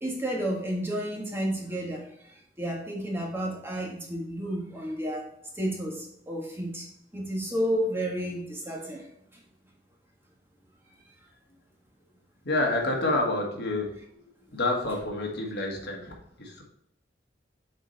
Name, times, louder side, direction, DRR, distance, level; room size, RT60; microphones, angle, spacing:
voice 1, 0.0-5.2 5.5-6.9 7.1-9.0 9.3-9.4, equal, 15° right, -2 dB, 1.6 m, -31 dB
voice 2, 12.4-14.0 14.5-16.6, left 2 dB, 65° left, 0 dB, 1.6 m, -28 dB
7.1 x 4.4 x 4.1 m, 0.75 s
head